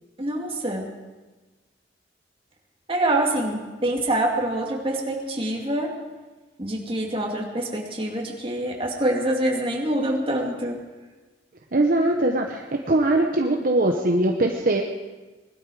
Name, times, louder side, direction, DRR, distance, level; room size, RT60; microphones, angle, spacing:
voice 1, 0.2-0.9 2.9-5.9 6.6-10.8, right 1 dB, 30° right, 0 dB, 2.4 m, -25 dB
voice 2, 11.7-14.8, right 2 dB, 50° right, 2 dB, 1.0 m, -21 dB
20.0 x 12.5 x 4.9 m, 1.3 s
head